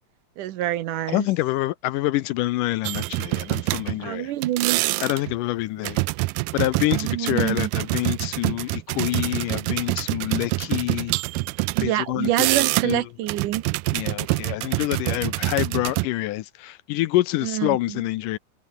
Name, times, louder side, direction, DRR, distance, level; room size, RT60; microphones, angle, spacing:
voice 1, 0.4-1.3 4.0-4.8 6.9-7.7 11.8-13.6 17.4-18.0, right 13 dB, 70° right, 2.3 m, -26 dB
voice 2, 1.1-4.3 5.0-6.0 6.5-11.2 11.8-12.5 12.8-13.0 13.9-18.4, left 17 dB, 75° left, 2.1 m, -26 dB
sound 1, 2.9-4.1 4.4-5.4 5.8-11.9 12.2-13.0 13.3-16.1, right 22 dB, 90° right, 2.3 m, -26 dB
omnidirectional pair, 4.1 m